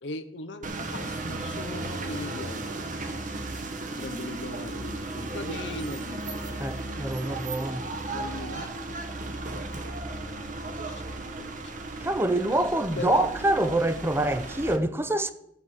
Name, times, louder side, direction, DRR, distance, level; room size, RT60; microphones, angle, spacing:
voice 1, 0.0-2.8 4.0-8.7 10.0-10.4 10.7-11.7 12.5-13.5, left 3 dB, 85° left, 0.8 m, -40 dB
sound 1, 0.6-14.8, right 2 dB, 45° right, 1.1 m, -35 dB
voice 2, 6.6-7.9 12.0-15.3, right 1 dB, 15° right, 0.5 m, -26 dB
13.5 x 4.8 x 7.3 m
head